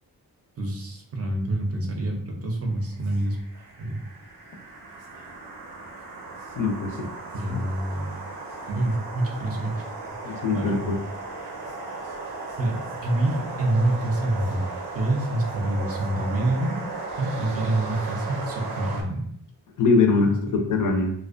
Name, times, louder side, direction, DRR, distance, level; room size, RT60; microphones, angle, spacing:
voice 1, 0.6-3.4 3.8-4.0 7.3-8.2 8.7-9.9 10.3-10.7 12.6-14.6 14.9-16.8 17.2-19.3 20.1-20.4, right 1 dB, 40° right, 1 dB, 0.5 m, -27 dB
sound 1, 2.9-19.0, right 3 dB, 80° right, 0.6 m, -36 dB
voice 2, 6.6-7.1 7.5-7.6 10.2-11.0 19.8-21.1, left 4 dB, 55° left, 3 dB, 0.5 m, -22 dB
2.4 x 2.2 x 2.4 m, 0.66 s
wide cardioid pair, 100°, 38 cm